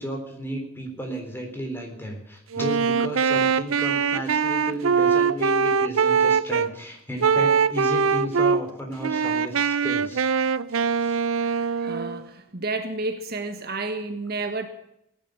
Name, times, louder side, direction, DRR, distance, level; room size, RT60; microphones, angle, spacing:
voice 1, 0.0-10.3 10.7-11.2, right 1 dB, 10° left, 2 dB, 3.8 m, -33 dB
Wind instrument woodwind instrument, 2.5-6.7 7.2-8.6 9.0-12.2, right 6 dB, 80° right, 0.6 m, -22 dB
voice 2, 11.4-14.7, right 3 dB, 50° right, 6 dB, 1.4 m, -31 dB
17.5 x 10.5 x 7.8 m, 0.81 s
head